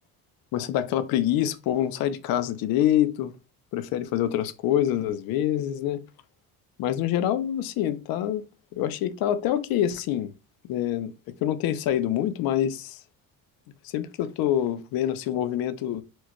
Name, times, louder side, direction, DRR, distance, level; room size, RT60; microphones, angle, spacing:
voice 1, 0.5-3.3 3.7-6.0 6.8-8.4 8.7-10.3 10.7-11.1 11.4-13.0 13.9-16.0, left 11 dB, 70° left, 0.5 m, -26 dB
4.4 x 2.2 x 2.9 m
cardioid pair, 160°, 37 cm